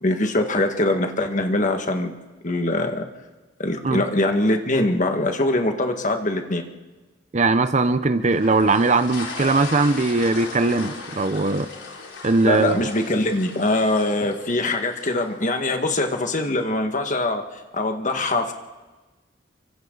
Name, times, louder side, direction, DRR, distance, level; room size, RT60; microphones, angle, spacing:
voice 1, 0.0-2.1 2.4-3.0 3.6-6.6 12.4-17.4 17.7-18.5, left 2 dB, 40° left, 5 dB, 1.8 m, -23 dB
voice 2, 7.3-11.7 12.2-12.9, right 3 dB, 40° right, 11 dB, 0.8 m, -20 dB
sound 1, 8.3-15.6, left 3 dB, 70° left, 4.9 m, -37 dB
28.5 x 24.5 x 4.0 m, 1.2 s
head